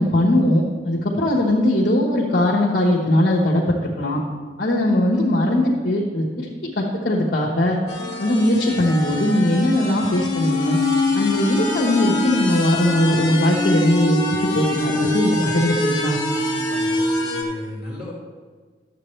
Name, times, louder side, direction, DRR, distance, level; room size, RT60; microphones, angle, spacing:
voice 1, 0.0-4.2 4.6-7.8 8.2-10.8 11.1-16.2, left 1 dB, 55° left, -5 dB, 1.3 m, -20 dB
sound 1, 7.9-17.4, left 2 dB, 20° left, 1.8 m, -24 dB
voice 2, 16.4-18.1, left 1 dB, 35° right, -11 dB, 3.1 m, -36 dB
11.5 x 8.0 x 3.3 m, 1.5 s
head